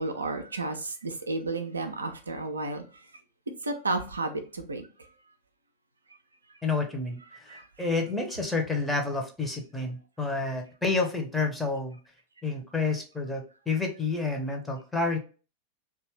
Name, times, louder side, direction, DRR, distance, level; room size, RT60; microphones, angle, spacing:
voice 1, 0.0-2.8 3.6-4.9 7.5-7.6, right 3 dB, 75° right, 0.4 m, -32 dB
voice 2, 6.6-12.0 12.4-15.2, left 3 dB, 5° left, 0.7 m, -29 dB
2.7 x 2.3 x 3.1 m
figure-of-eight pair, 90°, 0 cm